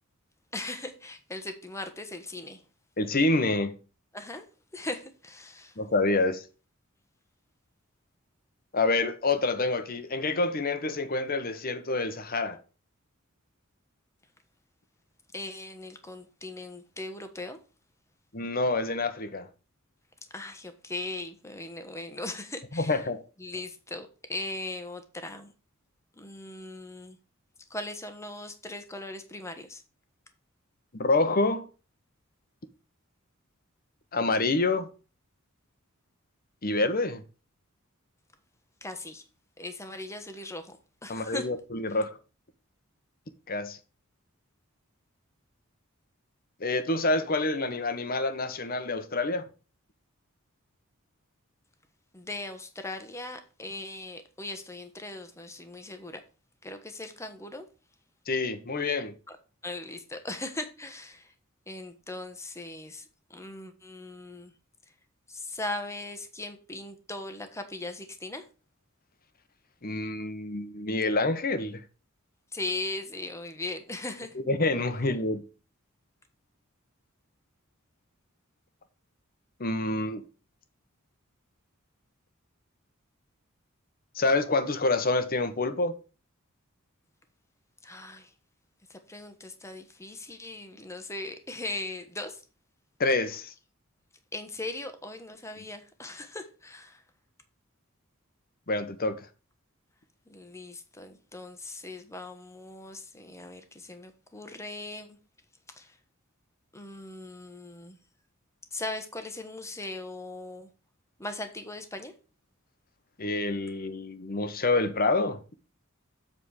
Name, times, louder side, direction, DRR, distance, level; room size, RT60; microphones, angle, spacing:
voice 1, 0.5-2.6 4.1-4.4 4.7-5.8 15.3-17.6 20.3-23.0 23.4-25.5 26.1-27.2 27.7-29.8 38.8-39.2 39.6-41.5 41.9-42.0 52.1-56.2 56.6-57.6 59.3-59.4 59.6-61.3 61.7-64.5 65.3-68.4 72.5-74.4 87.8-88.3 88.9-92.4 94.3-97.0 100.3-105.2 105.7-106.0 106.7-108.0 108.7-110.7 111.2-112.1, left 2 dB, 15° left, 1.2 m, -39 dB
voice 2, 3.0-3.7 5.8-6.4 8.7-12.6 18.3-19.5 22.7-23.2 30.9-31.7 34.1-34.9 36.6-37.2 41.1-42.2 43.5-43.8 46.6-49.5 58.3-59.1 69.8-71.8 74.5-75.4 79.6-80.2 84.1-86.0 93.0-93.5 98.7-99.3 113.2-115.4, left 2 dB, 45° left, 1.1 m, -27 dB
7.6 x 4.4 x 6.4 m
head